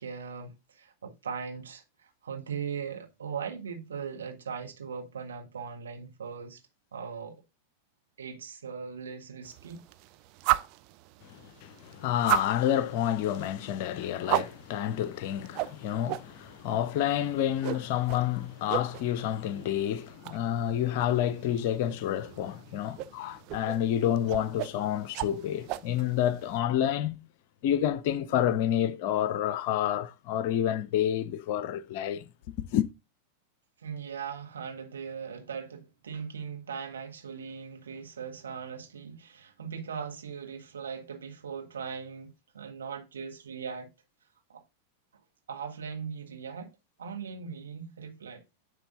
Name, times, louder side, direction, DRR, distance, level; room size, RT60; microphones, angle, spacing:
voice 1, 0.0-6.6 6.9-7.4 8.2-9.8 22.8-23.0 33.8-43.9 44.5-44.6 45.5-46.7 47.0-48.4, right 6 dB, 70° right, 1.5 m, -39 dB
sound 1, 9.4-26.6, right 16 dB, 40° right, 0.5 m, -37 dB
voice 2, 11.2-27.2 27.6-32.9, left 11 dB, 50° left, 0.6 m, -29 dB
10.0 x 3.5 x 3.8 m
figure-of-eight pair, 90°, 0 cm